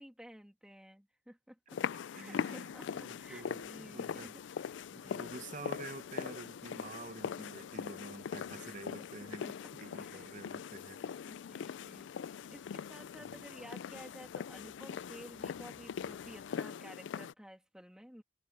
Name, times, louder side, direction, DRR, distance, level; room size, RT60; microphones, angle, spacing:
voice 1, 0.0-1.8 2.1-5.3 8.5-9.0 9.4-9.5 9.9-10.3 11.0-18.2, equal, 5° right, 2.5 m, -54 dB
sound 1, 1.7-17.3, left 7 dB, 80° left, 0.4 m, -41 dB
voice 2, 2.1-4.4 4.9-11.0, right 2 dB, 45° right, 1.2 m, -48 dB
sound 2, 2.7-16.6, left 1 dB, 40° left, 5.6 m, -71 dB
head